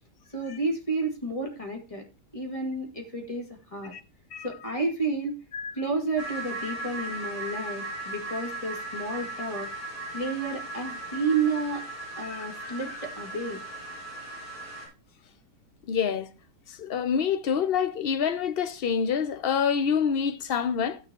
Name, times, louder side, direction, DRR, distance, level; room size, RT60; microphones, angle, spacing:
voice 1, 0.3-2.0 2.3-3.9 4.4-5.4 5.7-9.7 10.1-11.8 12.2-13.6, right 3 dB, 20° left, 2.4 m, -31 dB
sound 1, 6.2-14.9, right 2 dB, 65° left, 7.2 m, -37 dB
voice 2, 12.2-12.7 15.9-16.3 16.7-21.0, left 7 dB, 50° left, 0.7 m, -27 dB
17.0 x 6.7 x 3.0 m
omnidirectional pair, 1.8 m